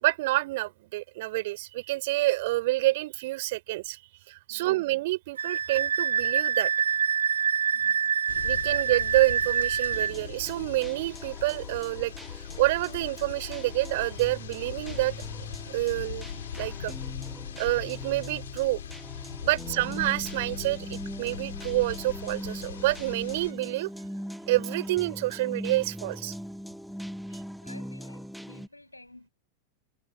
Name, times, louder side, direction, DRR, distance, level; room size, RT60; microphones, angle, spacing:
voice 1, 0.0-4.0 4.3-6.7 8.4-15.2 15.7-16.3 16.6-16.9 17.6-18.8 19.4-23.9 24.5-26.3 27.3-27.4, right 19 dB, 50° right, 3.5 m, -28 dB
voice 2, 4.5-4.8 7.7-8.2 19.6-19.9 27.3-29.3, left 2 dB, 85° left, 7.8 m, -52 dB
Wind instrument woodwind instrument, 5.4-10.1, right 7 dB, 70° right, 0.7 m, -26 dB
sound 1, 8.3-23.5, left 9 dB, 65° left, 2.1 m, -40 dB
sound 2, 9.9-28.7, equal, ahead, 1.6 m, -41 dB
figure-of-eight pair, 90°, 0 cm